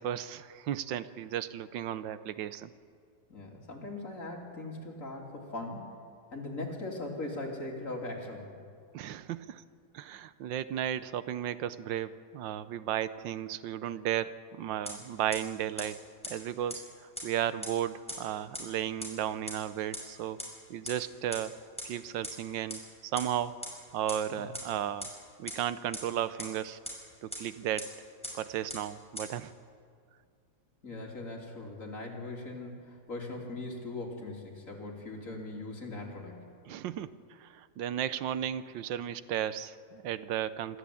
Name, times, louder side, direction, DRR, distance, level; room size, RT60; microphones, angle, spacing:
voice 1, 0.0-2.7 8.9-9.6 9.9-16.0 16.3-16.8 17.2-20.4 20.7-23.6 23.9-25.1 25.4-26.8 27.2-27.9 28.3-29.5 36.7-40.8, right 10 dB, 85° right, 14 dB, 1.5 m, -34 dB
voice 2, 3.3-6.0 6.3-8.6 24.4-24.5 30.8-36.5, left 2 dB, 45° left, -1 dB, 3.5 m, -40 dB
sound 1, 14.9-15.0 15.3-15.4 15.8-15.9 16.2-16.3 16.7-16.8 17.2-17.3 17.6-17.7 18.1-18.2 18.5-18.6 19.0-19.1 19.5-19.6 19.9-20.0 20.4-20.5 20.9-21.0 21.3-21.4 21.8-21.9 22.2-22.3 22.7-22.8 23.2-23.3 23.6-23.7 24.1-24.2 24.5-24.6 25.0-25.1 25.5-25.6 25.9-26.0 26.4-26.5 26.9-27.0 27.3-27.4 27.8-27.9 28.2-28.3 28.7-28.8 29.2-29.3, equal, 5° left, 5.4 m, -37 dB
26.0 x 13.0 x 8.5 m, 2.2 s
omnidirectional pair, 2.0 m